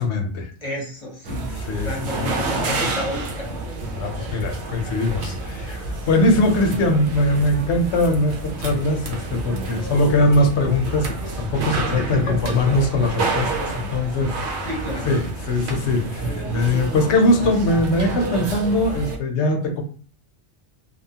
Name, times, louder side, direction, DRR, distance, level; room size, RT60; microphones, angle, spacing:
voice 1, 0.0-0.5 1.7-1.9 2.2-2.3 4.0-14.7 15.0-19.8, left 1 dB, 75° left, 4 dB, 0.9 m, -21 dB
voice 2, 0.6-1.6 1.8-3.6 11.8-12.8 14.6-15.3, left 1 dB, 35° left, -2 dB, 0.8 m, -31 dB
sound 1, 1.2-19.2, right 3 dB, 75° right, 0.9 m, -29 dB
2.8 x 2.2 x 2.7 m, 0.41 s
omnidirectional pair, 1.2 m